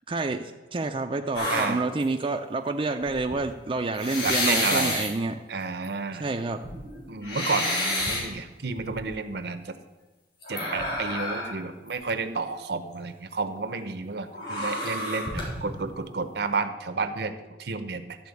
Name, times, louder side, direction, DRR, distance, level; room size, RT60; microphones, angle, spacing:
voice 1, 0.1-5.4 6.2-6.6, right 3 dB, 30° right, 4 dB, 0.5 m, -28 dB
sound 1, 1.3-2.2 3.0-3.3 4.0-5.1 5.8-5.9 6.4-8.2 8.8-9.1 10.4-11.6 11.9-12.0 14.3-15.8, left 1 dB, 65° left, 3.7 m, -29 dB
voice 2, 1.5-1.8 4.2-5.0 5.5-6.3 7.1-9.7 10.5-18.2, right 4 dB, 65° right, 10 dB, 0.8 m, -31 dB
12.5 x 4.2 x 8.3 m, 1.2 s
head